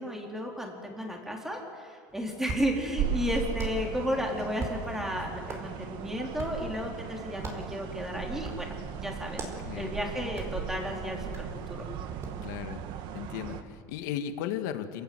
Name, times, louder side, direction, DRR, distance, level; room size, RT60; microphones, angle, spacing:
voice 1, 0.0-9.4 9.7-11.9, equal, 5° right, 0 dB, 4.4 m, -33 dB
Hands, 2.1-12.5, right 3 dB, 30° right, 4.7 m, -43 dB
sound 1, 3.0-13.6, right 8 dB, 55° right, 1.9 m, -37 dB
voice 2, 5.2-5.5 9.6-9.9 12.4-12.8 13.1-15.0, left 9 dB, 75° left, 7 dB, 2.1 m, -36 dB
28.0 x 18.0 x 8.2 m, 2.2 s
supercardioid pair, 140°, 10 cm